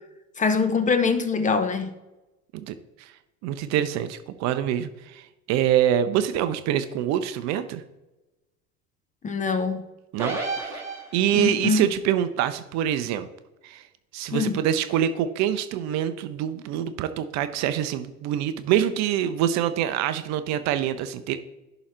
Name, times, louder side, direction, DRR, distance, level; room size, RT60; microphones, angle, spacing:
voice 1, 0.4-1.9 9.2-9.9 11.3-11.9 14.3-14.6, left 4 dB, 15° left, 9 dB, 0.7 m, -23 dB
voice 2, 2.5-3.1 3.4-7.8 10.1-10.4 10.7-10.8 11.1-13.3 13.6-13.8 14.1-21.4, right 10 dB, 40° right, 11 dB, 0.6 m, -25 dB
sound 1, 10.2-11.6, right 3 dB, 5° right, 2.3 m, -31 dB
11.5 x 3.9 x 4.4 m, 1.0 s
figure-of-eight pair, 80°, 43 cm